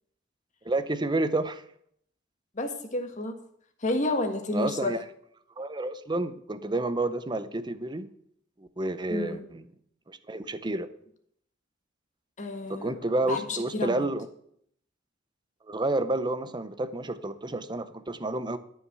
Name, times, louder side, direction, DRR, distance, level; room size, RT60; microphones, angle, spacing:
voice 1, 0.6-1.6 4.5-5.0 5.6-8.1 8.6-9.6 10.1-10.9 12.7-14.3 15.7-18.6, right 2 dB, 25° right, 12 dB, 0.7 m, -30 dB
voice 2, 2.5-3.4 3.8-4.9 9.1-9.4 12.4-12.9 13.2-14.0, left 2 dB, 40° left, 6 dB, 1.5 m, -30 dB
12.5 x 5.7 x 7.8 m, 0.69 s
head